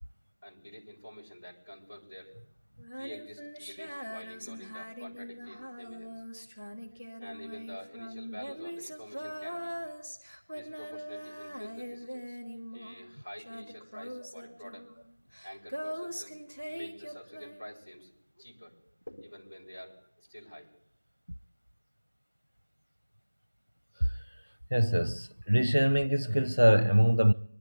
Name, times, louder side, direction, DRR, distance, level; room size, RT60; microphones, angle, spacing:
voice 1, 0.4-2.3 2.9-6.2 7.2-9.8 10.5-12.4 12.7-14.9 15.4-16.4 16.7-18.8 19.1-20.7, equal, 40° left, 6.1 m, -48 dB
Female singing, 2.8-13.1 13.4-17.8, equal, 5° left, 1.3 m, -42 dB
voice 2, 24.7-27.3, equal, 65° right, 0.8 m, -24 dB
25.5 x 12.0 x 3.6 m
figure-of-eight pair, 180°, 0 cm